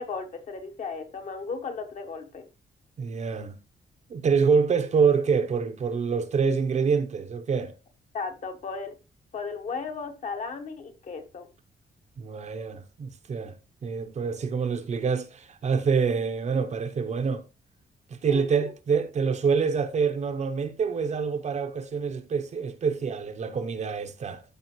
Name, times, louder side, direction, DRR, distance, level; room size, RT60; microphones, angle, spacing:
voice 1, 0.0-2.5 8.1-9.0 9.3-11.5 18.3-18.5, left 4 dB, 45° left, 1.3 m, -35 dB
voice 2, 3.0-3.6 4.1-7.7 12.2-13.5 13.8-17.4 18.1-24.4, right 5 dB, 45° right, 0.8 m, -26 dB
13.5 x 5.0 x 3.0 m
wide cardioid pair, 170°, 17 cm